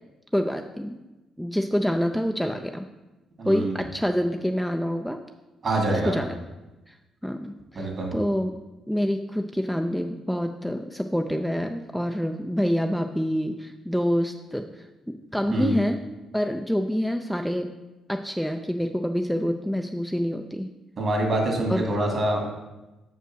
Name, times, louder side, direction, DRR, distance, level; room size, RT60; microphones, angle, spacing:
voice 1, 0.3-1.0 1.4-2.9 3.4-5.2 5.9-6.3 6.9-7.0 7.2-8.6 8.9-16.0 16.3-17.8 18.1-20.7 21.7-21.8, equal, ahead, 5 dB, 0.4 m, -27 dB
voice 2, 3.4-3.8 5.6-6.2 7.7-8.1 15.5-15.7 21.0-22.4, right 1 dB, 50° right, 0 dB, 2.4 m, -25 dB
6.5 x 5.5 x 6.2 m, 1.1 s
cardioid pair, 90°, 0 cm